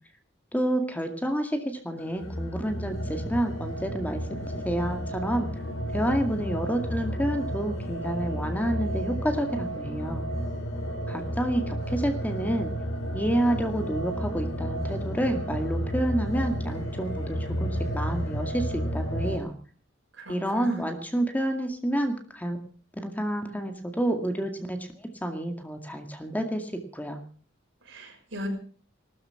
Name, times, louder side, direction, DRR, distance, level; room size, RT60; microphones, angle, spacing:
voice 1, 0.5-4.2 4.6-5.5 5.9-10.3 11.1-12.7 13.1-19.5 20.3-22.6 23.0-27.2, right 1 dB, 10° left, 5 dB, 2.1 m, -29 dB
sound 1, 2.0-19.4, equal, 80° left, 5.4 m, -32 dB
voice 2, 20.1-20.8 27.8-28.5, equal, 70° right, 2 dB, 6.0 m, -38 dB
19.0 x 13.0 x 5.8 m, 0.43 s
head